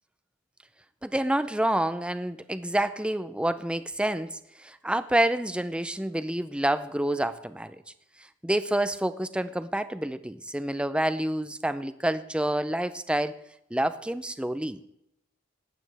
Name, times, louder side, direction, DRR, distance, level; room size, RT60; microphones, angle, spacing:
voice 1, 1.0-7.8 8.4-13.4 13.7-14.8, right 1 dB, 5° right, 12 dB, 0.5 m, -28 dB
19.5 x 8.7 x 3.4 m, 0.80 s
head